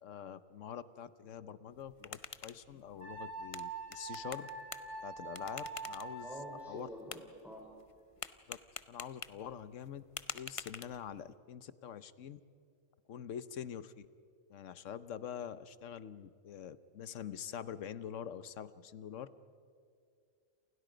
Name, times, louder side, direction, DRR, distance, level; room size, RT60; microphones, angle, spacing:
voice 1, 0.0-4.5 5.0-6.3 6.7-6.9 8.5-8.6 8.9-10.0 10.3-12.4 13.1-14.1 14.5-19.3, left 9 dB, 75° left, 14 dB, 1.2 m, -45 dB
sound 1, 1.7-11.3, left 5 dB, 35° left, 0.6 m, -49 dB
Wind instrument woodwind instrument, 3.0-6.8, right 3 dB, 55° right, 6.2 m, -44 dB
voice 2, 6.2-7.7, equal, ahead, -2 dB, 3.4 m, -47 dB
29.5 x 28.0 x 5.1 m, 2.3 s
omnidirectional pair, 1.3 m